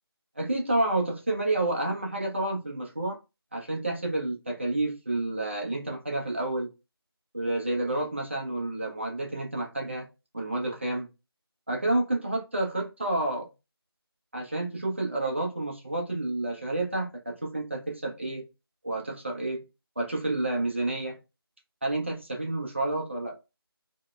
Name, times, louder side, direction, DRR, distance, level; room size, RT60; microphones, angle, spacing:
voice 1, 0.4-3.2 3.5-6.7 7.3-10.1 10.3-11.1 11.7-13.5 14.3-18.5 18.8-19.7 20.0-21.2 21.8-23.4, right 2 dB, 30° right, 0.5 m, -29 dB
2.6 x 2.0 x 2.3 m
figure-of-eight pair, 170°, 13 cm